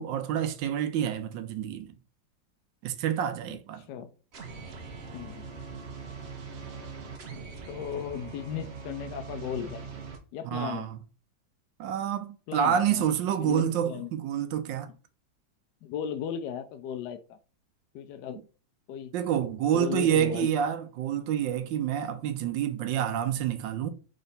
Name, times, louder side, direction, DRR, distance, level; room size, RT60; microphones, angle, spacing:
voice 1, 0.0-1.9 2.8-3.8 10.4-11.0 11.8-14.9 19.1-23.9, right 9 dB, 80° right, 1.3 m, -28 dB
voice 2, 3.5-4.1 5.1-5.5 7.7-9.9 10.3-10.9 12.5-13.1 13.4-14.1 15.8-17.4 17.9-18.4 18.9-19.1 19.7-20.6, left 8 dB, 75° left, 1.1 m, -36 dB
sound 1, 4.3-10.2, right 5 dB, 55° right, 0.7 m, -42 dB
3.9 x 3.3 x 4.0 m
omnidirectional pair, 2.0 m